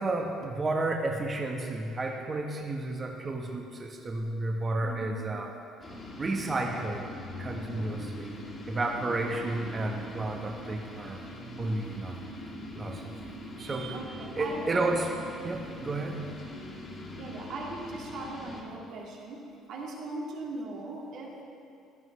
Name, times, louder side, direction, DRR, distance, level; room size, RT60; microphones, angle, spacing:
voice 1, 0.0-5.5 6.2-7.1 7.4-8.3 8.7-11.2 11.6-12.2 12.7-13.0 13.6-14.0 14.4-15.1 15.4-16.2, right 2 dB, 35° right, 1 dB, 1.2 m, -31 dB
voice 2, 4.8-5.2 7.5-8.0 13.5-14.9 17.2-21.4, right 2 dB, 65° right, -2 dB, 2.3 m, -40 dB
sound 1, 5.8-18.6, left 1 dB, 40° left, 2.3 m, -42 dB
14.5 x 11.0 x 3.3 m, 2.5 s
hypercardioid pair, 65°, 0 cm